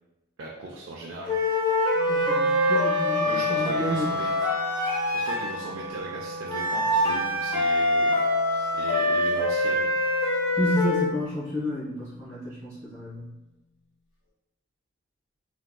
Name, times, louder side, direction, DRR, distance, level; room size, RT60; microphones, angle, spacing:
voice 1, 0.4-1.4 3.3-4.3 5.1-8.2 8.5-10.0, right 2 dB, 70° right, -3 dB, 0.4 m, -38 dB
sound 1, 1.3-5.6 6.5-11.1, left 1 dB, 20° left, 0.6 m, -24 dB
Wind instrument woodwind instrument, 1.9-12.1, right 3 dB, 85° left, 1.2 m, -37 dB
voice 2, 2.1-4.1 10.6-13.3, equal, 15° right, -13 dB, 1.4 m, -30 dB
3.5 x 2.6 x 2.2 m, 1.0 s
head